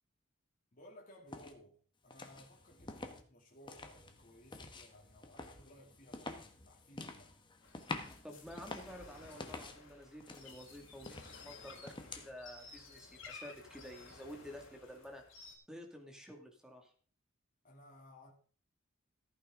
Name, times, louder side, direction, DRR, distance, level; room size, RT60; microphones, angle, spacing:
voice 1, 0.7-7.4 17.6-18.3, left 1 dB, 40° left, 2.7 m, -59 dB
sound 1, 1.3-1.5 2.1-3.2 3.6-9.8 10.2-12.3, left 2 dB, 25° left, 1.2 m, -48 dB
sound 2, 2.8-3.1 5.5-5.9 8.4-8.8 11.0-11.3, right 1 dB, 75° right, 5.6 m, -66 dB
sound 3, 7.6-15.6, left 4 dB, 75° left, 3.3 m, -55 dB
voice 2, 8.2-15.2 15.7-16.9, equal, 5° right, 2.1 m, -51 dB
14.5 x 9.4 x 3.8 m
head